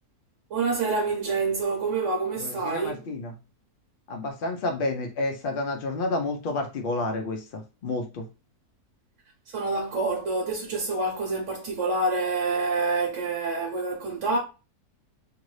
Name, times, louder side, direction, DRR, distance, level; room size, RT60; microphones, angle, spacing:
voice 1, 0.5-3.0 9.5-14.4, right 3 dB, 55° right, 1.0 m, -27 dB
voice 2, 2.4-3.3 4.1-8.2, left 2 dB, 80° left, 0.4 m, -30 dB
2.8 x 2.6 x 3.1 m
omnidirectional pair, 1.6 m